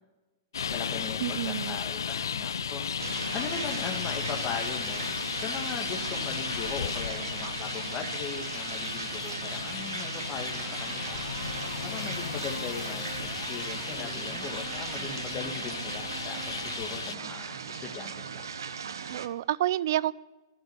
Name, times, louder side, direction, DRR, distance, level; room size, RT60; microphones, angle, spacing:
Traffic noise roadway noise, 0.5-17.2, left 7 dB, 75° left, 0.4 m, -35 dB
voice 1, 0.7-5.0 5.3-18.5, left 6 dB, 30° left, 1 dB, 1.9 m, -39 dB
voice 2, 1.2-1.8 19.1-20.1, right 13 dB, 60° right, 21 dB, 0.5 m, -29 dB
sound 1, 3.0-19.3, right 6 dB, 75° right, 1.0 m, -38 dB
Electric guitar, 10.5-18.5, right 6 dB, 20° right, 0.9 m, -48 dB
11.5 x 11.0 x 8.6 m, 1.1 s
hypercardioid pair, 110°, 2 cm